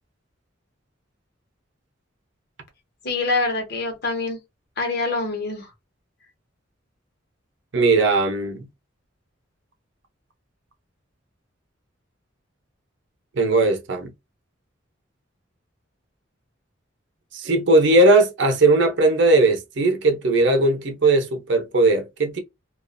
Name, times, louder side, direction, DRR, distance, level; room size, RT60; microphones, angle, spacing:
voice 1, 3.0-4.4 4.8-5.7, left 3 dB, 55° left, 0.9 m, -25 dB
voice 2, 7.7-8.7 13.3-14.1 17.3-22.4, right 2 dB, 65° right, 0.6 m, -18 dB
2.4 x 2.4 x 2.5 m
head